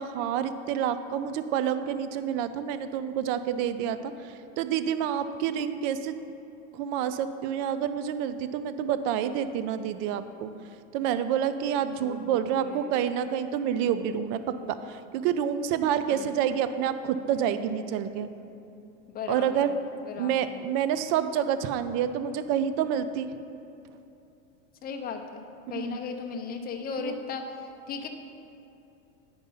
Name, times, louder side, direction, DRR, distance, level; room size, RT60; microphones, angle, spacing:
voice 1, 0.0-6.1 6.7-10.5 10.9-18.3 19.3-19.7 20.2-23.3 25.7-26.0 27.0-27.2, right 9 dB, 45° right, 11 dB, 0.5 m, -28 dB
voice 2, 12.0-12.9 16.1-16.3 19.1-19.7 20.0-20.6 24.8-25.4 25.7-28.1, left 5 dB, 25° left, 3 dB, 0.7 m, -37 dB
9.5 x 5.3 x 5.4 m, 2.8 s
supercardioid pair, 135°, 38 cm